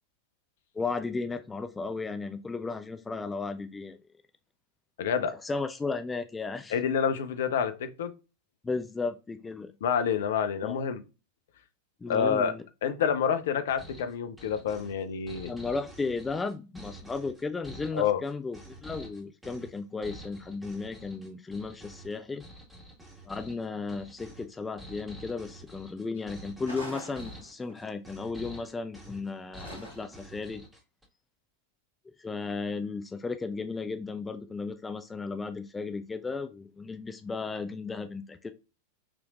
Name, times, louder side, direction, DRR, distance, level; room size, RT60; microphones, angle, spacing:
voice 1, 0.7-4.0 5.4-6.8 8.6-9.7 10.6-10.8 12.0-12.6 15.5-22.4 23.3-30.6 32.2-38.5, left 4 dB, 10° left, 9 dB, 0.4 m, -35 dB
voice 2, 5.0-5.3 6.7-8.1 9.8-11.0 12.1-12.5 12.8-15.5 17.9-18.2, left 7 dB, 60° left, 9 dB, 0.7 m, -28 dB
sound 1, 13.7-31.1, equal, 10° right, 1.8 m, -48 dB
sound 2, 26.6-27.8 29.6-30.3, equal, 80° right, 2.3 m, -43 dB
6.0 x 3.2 x 2.5 m, 0.30 s
figure-of-eight pair, 90°, 0 cm